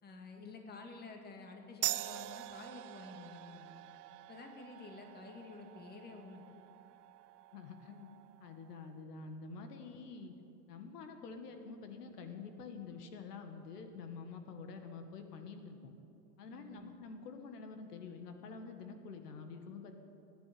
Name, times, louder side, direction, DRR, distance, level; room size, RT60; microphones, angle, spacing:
voice 1, 0.0-3.8 4.3-6.6 16.5-16.9, left 3 dB, 20° left, 3 dB, 1.9 m, -51 dB
sound 1, 1.8-8.9, right 16 dB, 80° right, 0.7 m, -44 dB
voice 2, 7.5-8.1 8.4-10.3 10.7-15.9 16.4-19.9, left 4 dB, 80° left, 6 dB, 1.9 m, -48 dB
24.5 x 10.5 x 5.2 m, 2.8 s
supercardioid pair, 135°, 46 cm